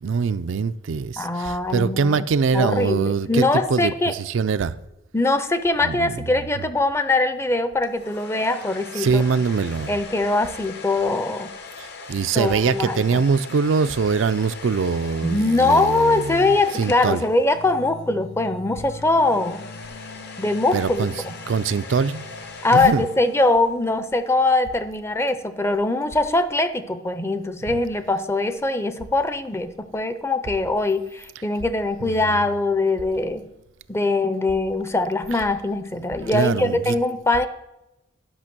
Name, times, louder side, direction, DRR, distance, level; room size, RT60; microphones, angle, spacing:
voice 1, 0.0-4.8 5.8-6.6 9.0-9.9 11.8-17.2 20.7-22.3 22.7-23.0 32.1-32.2 36.2-37.0, right 5 dB, 70° right, 0.4 m, -23 dB
voice 2, 1.2-2.2 2.5-4.1 5.1-9.2 9.9-11.5 12.3-13.2 15.2-19.6 20.4-21.1 22.6-33.5 33.9-37.5, left 2 dB, 15° left, 0.5 m, -22 dB
sound 1, 7.8-18.0 19.0-23.7, left 3 dB, 55° left, 1.0 m, -40 dB
sound 2, 17.5-24.1, left 4 dB, 75° left, 0.8 m, -42 dB
11.0 x 5.8 x 6.1 m
head